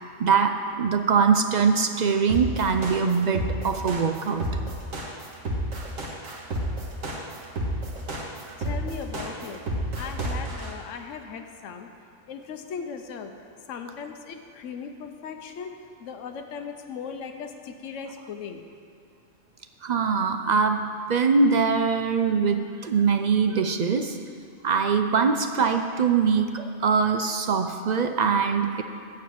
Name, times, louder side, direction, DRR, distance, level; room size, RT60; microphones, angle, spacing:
voice 1, 0.2-4.5 19.8-24.2 24.6-28.8, right 5 dB, 55° right, 7 dB, 0.4 m, -23 dB
sound 1, 2.3-10.7, right 1 dB, 85° right, 1.9 m, -30 dB
voice 2, 8.6-9.6 10.0-11.9 12.3-13.3 13.7-15.7 16.0-18.6, left 6 dB, 70° left, 5 dB, 1.1 m, -38 dB
14.0 x 4.8 x 8.6 m, 2.4 s
omnidirectional pair, 1.3 m